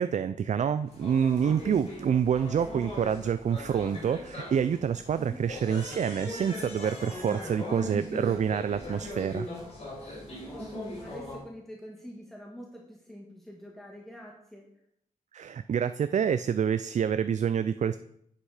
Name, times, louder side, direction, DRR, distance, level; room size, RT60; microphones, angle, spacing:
voice 1, 0.0-9.5 15.3-18.0, right 8 dB, 55° right, 12 dB, 0.4 m, -27 dB
sound 1, 0.9-11.4, left 1 dB, 50° left, 4.4 m, -40 dB
voice 2, 1.6-2.1 5.2-5.4 10.5-14.7, equal, ahead, -2 dB, 1.5 m, -46 dB
10.0 x 8.2 x 4.9 m, 0.72 s
wide cardioid pair, 135°, 14 cm